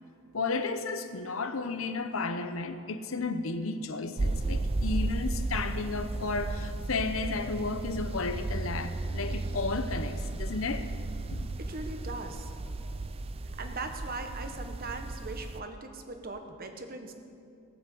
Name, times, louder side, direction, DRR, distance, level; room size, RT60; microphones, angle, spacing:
voice 1, 0.3-10.9 11.3-11.5, left 3 dB, 65° left, 9 dB, 0.9 m, -33 dB
sound 1, 4.2-15.6, right 2 dB, 25° right, 0.4 m, -34 dB
voice 2, 11.6-12.5 13.6-17.1, right 3 dB, 45° right, 6 dB, 1.2 m, -40 dB
18.0 x 7.9 x 7.8 m, 2.5 s
head